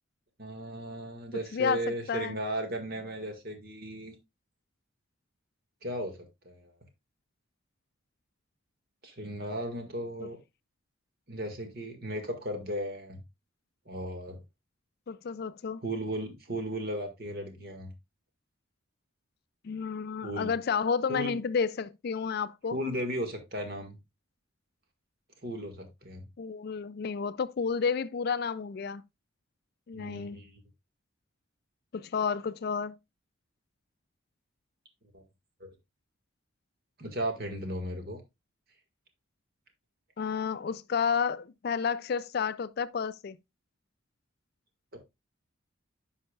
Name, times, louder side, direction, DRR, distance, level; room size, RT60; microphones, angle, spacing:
voice 1, 0.4-4.1 5.8-6.2 6.4-6.7 9.0-10.4 11.3-13.2 13.9-14.4 15.8-17.9 20.2-20.5 21.1-21.4 22.7-24.0 25.4-26.3 29.9-30.6 35.1-35.2 35.6-35.7 37.0-38.2, equal, 50° right, 1.9 m, -36 dB
voice 2, 1.5-2.4 10.2-10.3 15.1-15.8 19.6-22.8 26.4-29.0 29.9-30.4 31.9-32.9 40.2-43.4, left 6 dB, 50° left, 0.3 m, -31 dB
10.5 x 5.6 x 2.4 m
head